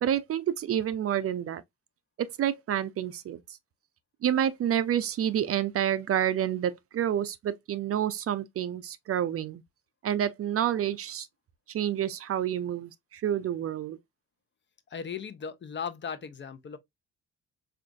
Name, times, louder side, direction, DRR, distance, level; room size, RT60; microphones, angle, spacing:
voice 1, 0.0-1.6 2.2-3.4 4.2-9.6 10.0-11.3 11.7-14.0, right 10 dB, 50° right, 0.5 m, -29 dB
voice 2, 14.9-16.8, left 6 dB, 40° left, 0.6 m, -37 dB
4.9 x 2.5 x 2.3 m
cardioid pair, 90°, 30 cm